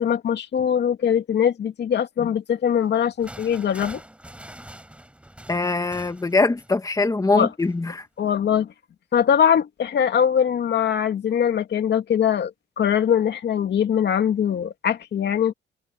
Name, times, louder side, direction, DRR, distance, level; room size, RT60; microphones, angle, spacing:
voice 1, 0.0-4.0 7.3-7.5 8.2-8.7 9.1-15.5, left 8 dB, 60° left, 2.5 m, -22 dB
sound 1, 2.8-6.9 7.6-7.8, right 1 dB, 5° right, 4.1 m, -43 dB
voice 2, 5.5-8.1, left 3 dB, 15° left, 1.9 m, -22 dB
cardioid pair, 90°, 20 cm